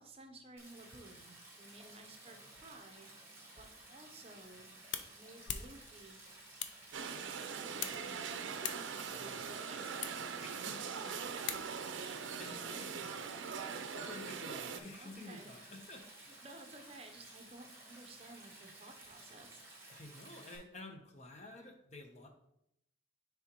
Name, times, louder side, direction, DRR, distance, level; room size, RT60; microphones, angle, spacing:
voice 1, 0.0-3.1 3.6-4.7 5.1-6.2 6.9-10.2 12.3-12.9 15.0-15.7 16.2-19.6, right 2 dB, 30° right, 4 dB, 0.7 m, -55 dB
Stream, 0.6-20.6, right 2 dB, 15° right, 1.5 m, -55 dB
sound 1, 4.3-12.1, left 9 dB, 70° left, 0.5 m, -47 dB
sound 2, 6.9-14.8, right 6 dB, 85° right, 0.5 m, -42 dB
voice 2, 9.1-9.5 10.4-11.5 12.4-13.1 13.9-16.1 19.9-22.3, left 2 dB, 35° left, 4 dB, 0.7 m, -51 dB
9.7 x 3.5 x 2.9 m, 0.77 s
head